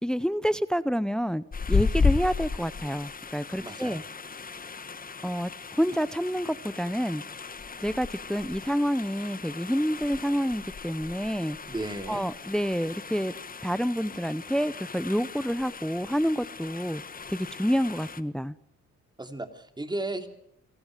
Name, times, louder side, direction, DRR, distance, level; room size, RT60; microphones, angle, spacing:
voice 1, 0.0-4.0 5.2-7.2 7.8-11.6 12.1-13.3 13.6-17.0 17.3-18.5, equal, ahead, 17 dB, 0.7 m, -28 dB
sound 1, 1.5-18.2, left 5 dB, 30° left, 1.3 m, -34 dB
voice 2, 3.6-4.0 11.7-12.2 19.2-20.3, right 2 dB, 15° right, 7 dB, 3.2 m, -34 dB
29.0 x 18.0 x 5.0 m, 0.78 s
cardioid pair, 90°, 30 cm